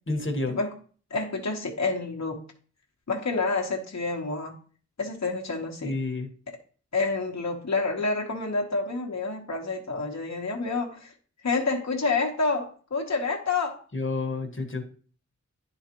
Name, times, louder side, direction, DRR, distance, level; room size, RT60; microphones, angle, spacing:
voice 1, 0.1-0.6 5.8-6.3 13.9-14.8, left 3 dB, 40° left, 3 dB, 1.3 m, -29 dB
voice 2, 1.1-2.5 3.1-4.6 5.0-6.0 6.9-11.1 11.4-13.8, left 3 dB, 65° left, 0 dB, 1.2 m, -28 dB
10.5 x 4.0 x 3.0 m, 0.42 s
wide cardioid pair, 65°, 30 cm